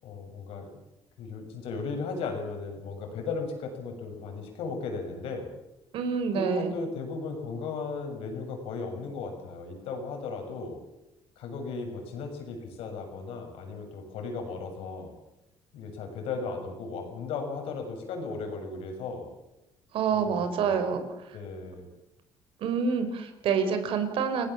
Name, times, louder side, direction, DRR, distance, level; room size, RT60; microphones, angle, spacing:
voice 1, 0.0-0.7 1.2-5.5 6.3-10.8 11.4-15.1 15.7-19.3 20.1-20.9 21.3-21.9, left 4 dB, 90° left, 4 dB, 7.1 m, -36 dB
voice 2, 5.9-6.7 19.9-21.0 22.6-24.5, right 6 dB, 75° right, 8 dB, 4.9 m, -27 dB
30.0 x 18.5 x 7.4 m, 0.93 s
cardioid pair, 120°, 9 cm